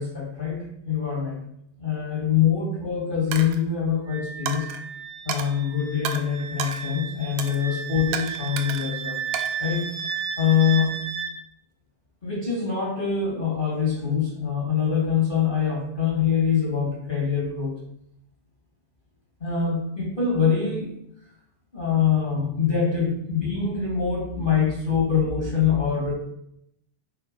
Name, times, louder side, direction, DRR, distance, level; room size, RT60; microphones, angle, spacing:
voice 1, 0.0-1.4 1.8-4.7 5.2-9.2 9.6-9.9 10.4-10.9 12.2-17.7 19.4-20.9 21.7-26.1, left 7 dB, 50° left, -3 dB, 0.5 m, -24 dB
Coin (dropping), 3.3-3.6 4.5-4.8 5.3-5.5 6.1-6.2 6.6-6.8 7.4-7.6 8.1-8.9 9.3-10.3, right 7 dB, 90° right, 2.4 m, -32 dB
Wind instrument woodwind instrument, 4.1-11.3, right 7 dB, 70° right, 2.0 m, -34 dB
9.1 x 3.7 x 5.1 m, 0.77 s
omnidirectional pair, 3.8 m